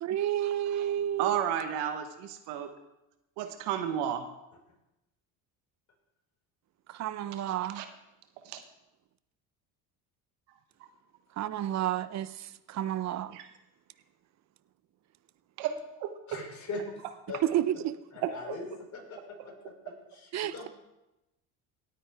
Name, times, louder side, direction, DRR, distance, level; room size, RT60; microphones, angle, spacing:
voice 1, 0.0-1.4 6.9-7.8 11.4-13.4 17.4-18.3 20.3-20.7, right 11 dB, 45° right, 0.6 m, -31 dB
voice 2, 1.2-2.7 3.4-4.2 7.5-7.9 8.4-8.6 13.3-13.5 15.6-15.7 16.0-16.4 18.2-18.6, right 9 dB, 80° right, 1.2 m, -33 dB
voice 3, 16.3-17.4 18.1-18.6 18.9-20.7, left 3 dB, 45° left, 5.1 m, -41 dB
17.5 x 9.4 x 3.5 m
supercardioid pair, 95°, 40 cm